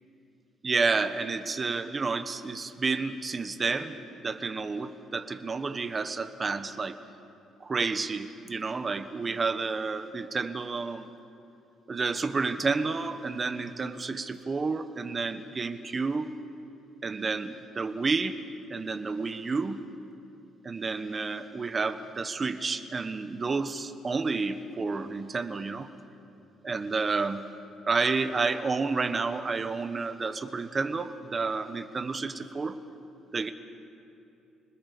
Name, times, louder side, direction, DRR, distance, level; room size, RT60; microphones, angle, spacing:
voice 1, 0.6-7.0 7.6-11.1 11.9-16.3 17.0-18.4 18.7-19.8 20.6-25.9 26.6-27.4 27.9-32.8 33.3-33.5, right 4 dB, 30° right, 10 dB, 1.2 m, -30 dB
26.0 x 20.5 x 6.9 m, 2.7 s
cardioid pair, 115°, 0 cm